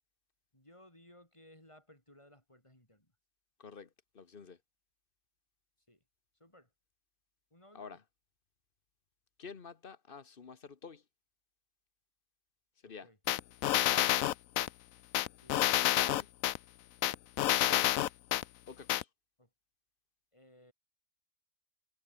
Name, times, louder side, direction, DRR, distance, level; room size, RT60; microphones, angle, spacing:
voice 1, 0.5-3.1 5.9-6.0 6.4-6.7 7.5-8.0 12.8-13.2 15.4-15.7 19.4-19.5 20.3-20.7, left 1 dB, 20° left, 6.5 m, -60 dB
voice 2, 4.1-4.6 7.7-8.0 9.4-11.0 12.8-13.1 13.7-14.3 15.8-16.3 17.4-17.9 18.7-19.1, left 5 dB, 40° left, 1.3 m, -48 dB
sound 1, 13.3-14.7 15.1-16.6 17.0-18.4 18.9-19.0, left 13 dB, 70° left, 1.0 m, -28 dB
omnidirectional pair, 1.6 m